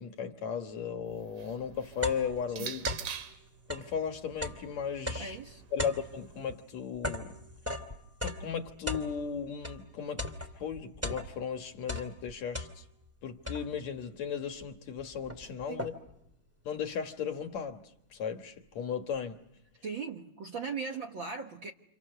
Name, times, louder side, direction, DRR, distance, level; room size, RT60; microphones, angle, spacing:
voice 1, 0.0-2.9 3.7-5.4 5.7-7.3 8.2-12.8 13.2-15.9 16.7-17.8 18.1-19.4, left 7 dB, 60° left, 2.6 m, -36 dB
sound 1, 1.0-3.5 4.4-6.5, right 9 dB, 75° right, 3.3 m, -44 dB
sound 2, 1.1-1.2 1.6-3.2 3.6-9.8 10.2-11.5 11.8-13.1 13.5-14.0 14.6-14.7 15.0-16.2, left 1 dB, 5° right, 1.8 m, -38 dB
voice 2, 5.2-5.6 15.7-15.9 19.8-21.7, right 5 dB, 50° right, 1.6 m, -38 dB
30.0 x 29.0 x 6.7 m
omnidirectional pair, 3.8 m